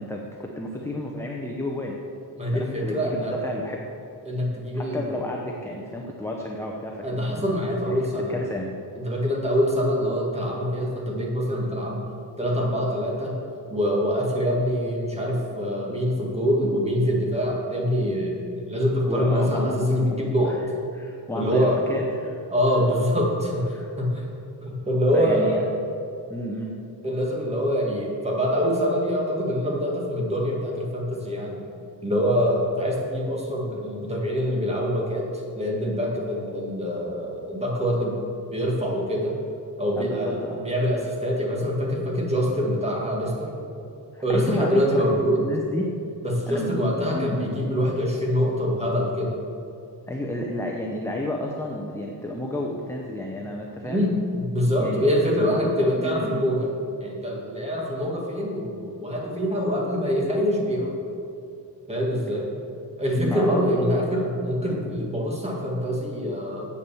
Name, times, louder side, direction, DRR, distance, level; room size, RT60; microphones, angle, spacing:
voice 1, 0.0-2.0 2.5-3.1 3.4-3.8 4.7-7.6 7.9-8.0 8.3-8.7 19.1-20.2 20.5-20.6 20.9-22.4 23.7-23.9 25.1-25.6 26.3-26.7 40.0-40.6 44.1-45.9 46.5-47.5 50.1-54.0 54.8-56.4 63.2-63.9, left 1 dB, 5° left, 0 dB, 0.6 m, -31 dB
voice 2, 2.4-3.4 4.3-5.2 7.0-8.3 9.0-12.0 12.4-13.4 13.7-18.4 18.7-20.6 21.3-21.8 22.5-24.2 24.6-25.6 27.0-31.6 32.0-35.3 35.6-38.2 38.5-39.4 39.8-43.5 44.2-45.4 46.2-49.4 53.8-56.7 57.0-61.0 61.9-62.5 63.0-66.7, equal, 15° right, -2 dB, 1.8 m, -25 dB
8.2 x 7.2 x 6.9 m, 2.6 s
wide cardioid pair, 155°, 41 cm